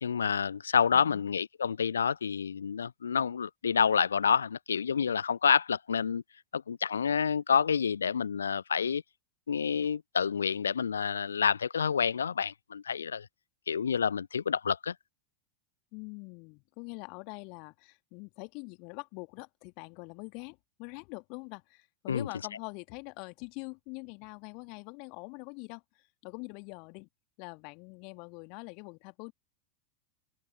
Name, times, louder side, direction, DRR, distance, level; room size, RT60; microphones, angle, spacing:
voice 1, 0.0-6.2 6.5-9.0 9.5-13.3 13.7-14.9 22.1-22.3, left 7 dB, 70° left, 0.8 m, -28 dB
voice 2, 0.9-1.3 15.9-25.8 26.2-27.1 27.4-29.3, left 34 dB, 45° left, 2.2 m, -44 dB
open air
figure-of-eight pair, 90°, 0 cm